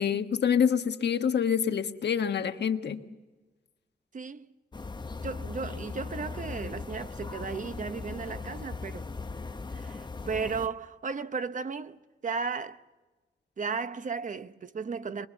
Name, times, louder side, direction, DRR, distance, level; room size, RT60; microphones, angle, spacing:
voice 1, 0.0-3.0, left 7 dB, 85° left, 1.3 m, -26 dB
voice 2, 4.1-4.5 5.2-9.1 9.7-12.8 13.6-15.3, right 5 dB, 50° right, 0.8 m, -35 dB
sound 1, 4.7-10.7, left 4 dB, 25° left, 0.9 m, -39 dB
24.5 x 21.5 x 7.1 m
wide cardioid pair, 130°, 17 cm